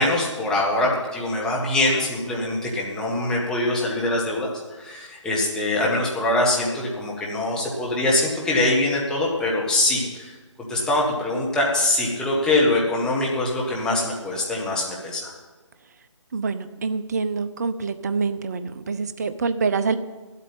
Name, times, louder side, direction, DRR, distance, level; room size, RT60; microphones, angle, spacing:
voice 1, 0.0-4.5 4.7-10.3 10.7-15.3, left 2 dB, 5° left, -4 dB, 1.6 m, -23 dB
voice 2, 16.3-20.0, right 4 dB, 35° right, 12 dB, 0.7 m, -26 dB
11.5 x 8.4 x 8.9 m, 1.3 s
figure-of-eight pair, 150°, 16 cm